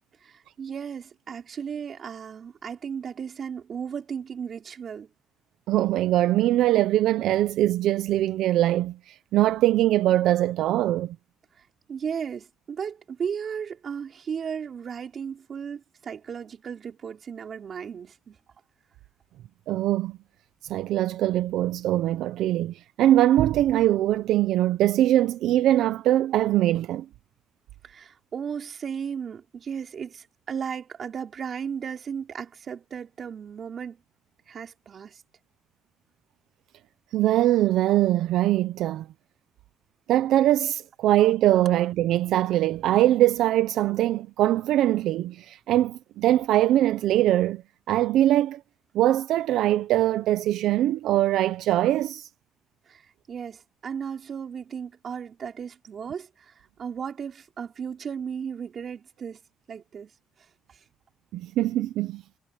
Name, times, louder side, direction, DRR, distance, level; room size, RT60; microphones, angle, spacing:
voice 1, 0.2-5.1 11.6-18.4 27.8-34.0 34.5-35.2 52.9-59.4 59.7-60.1, right 7 dB, 55° right, 4.1 m, -35 dB
voice 2, 5.7-11.2 19.7-20.2 20.6-27.0 37.1-39.1 40.1-47.6 47.9-48.6 48.9-52.3 61.3-62.2, right 13 dB, 85° right, 0.7 m, -22 dB
cardioid pair, 90°, 0 cm